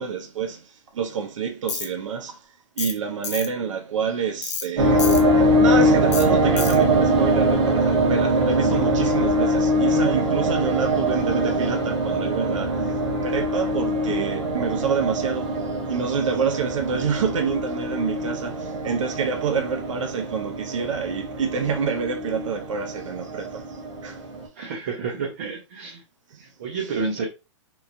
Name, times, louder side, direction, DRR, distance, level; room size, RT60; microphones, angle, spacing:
voice 1, 0.0-2.5 2.8-5.1 5.6-12.9 13.2-24.2 26.3-26.4 26.7-27.0, right 6 dB, 90° right, 0.5 m, -27 dB
Tools, 1.7-1.9 2.8-3.0 3.2-3.5 4.4-4.7 5.0-5.2 6.1-6.3 6.6-6.8, left 6 dB, 65° left, 0.7 m, -29 dB
sound 1, 4.8-24.5, right 1 dB, 65° right, 1.2 m, -23 dB
voice 2, 24.6-26.0 26.6-27.3, right 4 dB, 30° right, 0.4 m, -29 dB
3.0 x 2.1 x 2.5 m
hypercardioid pair, 180°, 16 cm